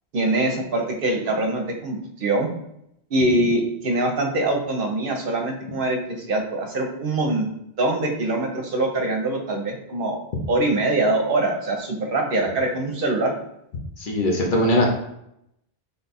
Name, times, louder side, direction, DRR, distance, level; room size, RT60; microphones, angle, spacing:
voice 1, 0.1-2.5 3.1-7.5 7.8-10.2 10.5-13.3, right 2 dB, 65° right, 2 dB, 0.8 m, -23 dB
voice 2, 14.0-14.9, left 1 dB, 55° left, 0 dB, 0.9 m, -20 dB
3.5 x 2.3 x 4.0 m, 0.78 s
omnidirectional pair, 1.0 m